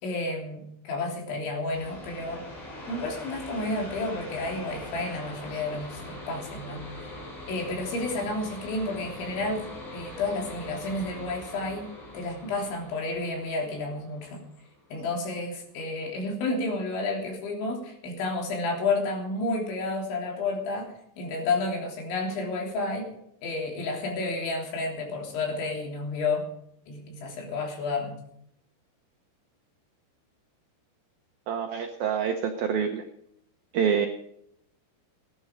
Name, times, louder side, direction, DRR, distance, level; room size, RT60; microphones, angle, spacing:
voice 1, 0.0-2.4 2.9-7.2 7.5-14.4 14.9-23.1 23.4-26.4 26.9-28.2, left 3 dB, 70° left, 1 dB, 5.6 m, -31 dB
sound 1, 1.6-15.0, left 1 dB, 40° left, 7.1 m, -42 dB
voice 2, 31.5-33.0 33.7-34.1, right 7 dB, 75° right, 5 dB, 2.2 m, -26 dB
18.5 x 11.0 x 5.2 m, 0.72 s
omnidirectional pair, 5.5 m